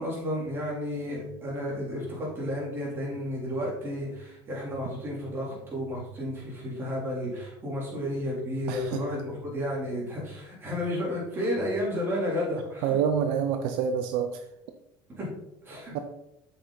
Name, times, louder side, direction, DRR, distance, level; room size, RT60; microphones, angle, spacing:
voice 1, 0.0-13.0 15.1-15.3 15.6-16.0, left 1 dB, 25° right, -4 dB, 3.4 m, -32 dB
voice 2, 8.7-9.0 12.8-14.4 15.9-16.0, right 7 dB, 75° right, 7 dB, 0.7 m, -27 dB
7.7 x 6.3 x 4.0 m, 0.85 s
cardioid pair, 140°, 9 cm